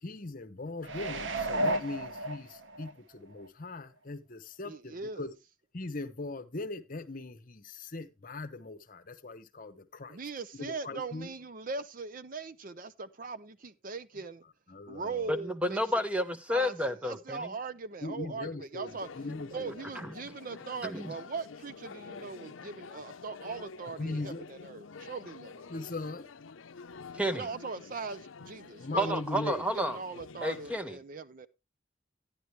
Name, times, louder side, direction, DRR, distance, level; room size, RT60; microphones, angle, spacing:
voice 1, 0.0-5.4 5.7-10.2 10.5-11.3 14.7-15.3 18.0-19.8 24.0-24.5 25.7-26.3 28.8-29.6, left 2 dB, 45° left, 0.9 m, -40 dB
sound 1, 0.8-2.9 3.4-3.5, right 1 dB, 75° right, 0.9 m, -32 dB
voice 2, 4.6-5.3 10.1-14.4 14.9-15.8 16.5-19.1 19.5-25.7 27.1-29.1 29.5-31.5, right 4 dB, 45° right, 0.5 m, -40 dB
voice 3, 15.3-17.5 20.0-20.1 20.9-21.1 27.1-27.5 29.0-30.0 30.4-31.0, equal, 5° right, 0.8 m, -31 dB
sound 2, 18.9-30.8, left 5 dB, 85° left, 0.6 m, -48 dB
11.0 x 10.5 x 3.1 m
head